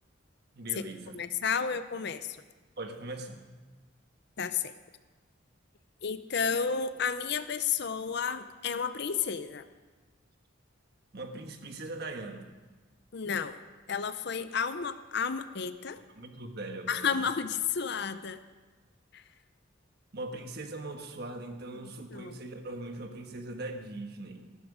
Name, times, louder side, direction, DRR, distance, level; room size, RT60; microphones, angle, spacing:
voice 1, 0.5-1.1 2.8-3.4 11.1-12.5 16.1-17.3 20.1-24.5, right 2 dB, 55° right, 5 dB, 1.4 m, -40 dB
voice 2, 1.1-2.4 4.4-4.7 6.0-9.6 13.1-13.6 13.9-16.0 16.9-18.4 19.1-19.2 21.8-22.4, left 6 dB, 55° left, 12 dB, 0.6 m, -32 dB
14.0 x 12.5 x 5.0 m, 1.3 s
head